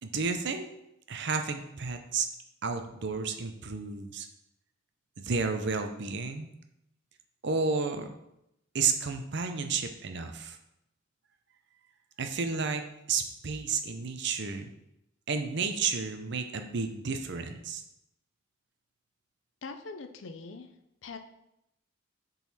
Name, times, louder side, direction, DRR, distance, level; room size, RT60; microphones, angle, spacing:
voice 1, 0.0-0.7 1.1-2.3 2.6-4.3 5.2-6.5 7.4-8.1 8.7-10.6 12.2-12.8 13.1-14.7 15.3-17.8, right 5 dB, 60° right, 6 dB, 0.7 m, -31 dB
voice 2, 19.6-20.7 21.0-21.2, left 4 dB, 70° left, 8 dB, 0.6 m, -42 dB
7.3 x 4.0 x 4.1 m, 0.84 s
head